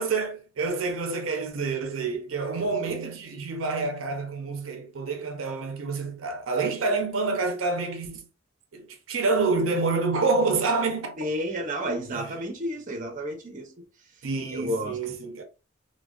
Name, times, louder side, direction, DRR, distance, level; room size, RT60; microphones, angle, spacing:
voice 1, 0.0-8.3 8.7-11.2 12.1-12.3 14.2-15.4, right 3 dB, 85° right, 0.6 m, -28 dB
voice 2, 11.2-13.7 14.5-15.0, equal, 40° right, 0.7 m, -31 dB
3.3 x 2.2 x 2.3 m
head